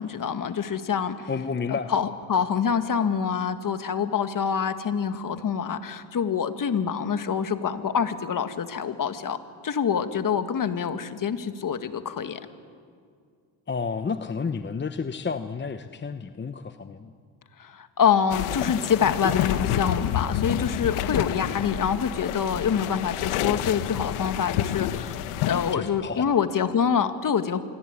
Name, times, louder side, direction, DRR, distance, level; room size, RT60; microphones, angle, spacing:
voice 1, 0.0-1.3 1.7-9.4 9.6-12.4 17.6-27.6, left 7 dB, 40° left, 9 dB, 1.9 m, -26 dB
voice 2, 1.3-1.9 13.7-17.1 25.7-26.3, left 5 dB, 20° left, 9 dB, 1.0 m, -31 dB
sound 1, 18.3-25.7, left 11 dB, 80° left, 1.5 m, -29 dB
26.0 x 23.0 x 9.7 m, 2.2 s
cardioid pair, 105°, 50 cm